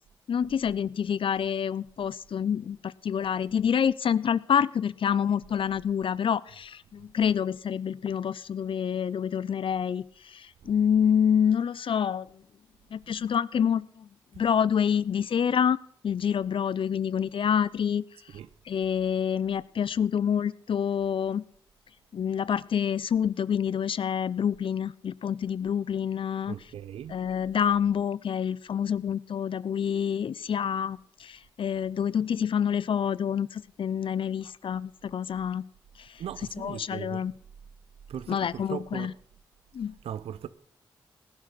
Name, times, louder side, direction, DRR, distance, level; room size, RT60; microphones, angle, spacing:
voice 1, 0.3-12.3 12.9-14.1 14.4-15.8 16.0-18.0 18.7-21.4 22.1-26.5 27.1-35.7 36.6-37.3 38.3-39.1 39.7-39.9, left 8 dB, 60° left, 0.5 m, -27 dB
voice 2, 26.4-27.2 36.2-37.3 38.1-39.2 40.0-40.5, right 9 dB, 80° right, 0.6 m, -39 dB
17.5 x 10.5 x 4.1 m
supercardioid pair, 40°, 10 cm